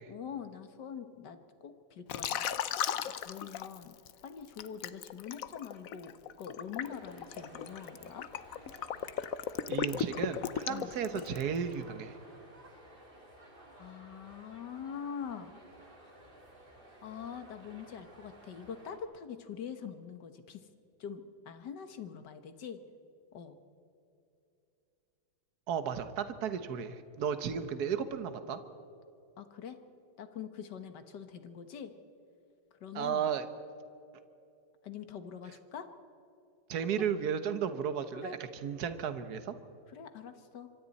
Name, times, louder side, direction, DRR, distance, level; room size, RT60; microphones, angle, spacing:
voice 1, 0.1-2.5 3.0-3.9 4.2-8.3 10.7-10.9 13.8-15.5 17.0-20.7 21.0-22.8 23.3-23.6 29.4-29.8 30.2-31.9 32.7-33.3 34.8-35.9 36.8-37.1 38.1-38.4 39.9-40.7, left 7 dB, 55° left, 9 dB, 1.8 m, -44 dB
Liquid, 2.1-4.1 4.6-11.6, left 9 dB, 75° left, 0.8 m, -36 dB
sound 1, 6.8-19.0, right 1 dB, 25° right, 3.1 m, -55 dB
voice 2, 9.7-12.2 25.7-28.6 32.9-33.5 36.7-39.6, right 7 dB, 50° right, 10 dB, 1.5 m, -34 dB
25.5 x 24.5 x 4.2 m, 2.8 s
omnidirectional pair, 2.3 m